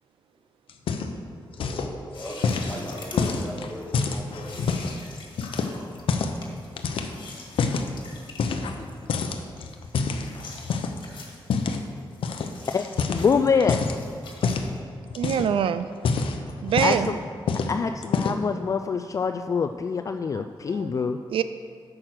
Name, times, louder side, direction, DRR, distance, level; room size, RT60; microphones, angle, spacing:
sound 1, 0.7-1.3 1.5-1.9 2.4-5.0 5.4-6.4 6.8-7.9 8.4-8.8 9.1-11.0 11.5-11.8 12.2-12.5 12.8-14.0 14.4-14.7 15.1-15.6 15.9-17.1 17.5-17.7 18.0-18.5, left 5 dB, 75° left, 0.7 m, -27 dB
voice 1, 1.4-4.7, equal, 5° left, -4 dB, 2.3 m, -38 dB
sound 2, 2.1-14.8, left 3 dB, 60° left, 1.8 m, -46 dB
voice 2, 12.7-13.8 16.8-17.2 17.7-21.2, left 5 dB, 35° left, 6 dB, 0.3 m, -25 dB
voice 3, 15.1-15.9 16.6-17.1 20.3-20.9 21.3-21.4, right 8 dB, 70° right, 12 dB, 0.4 m, -25 dB
8.9 x 6.4 x 5.9 m, 2.2 s
cardioid pair, 95°, 9 cm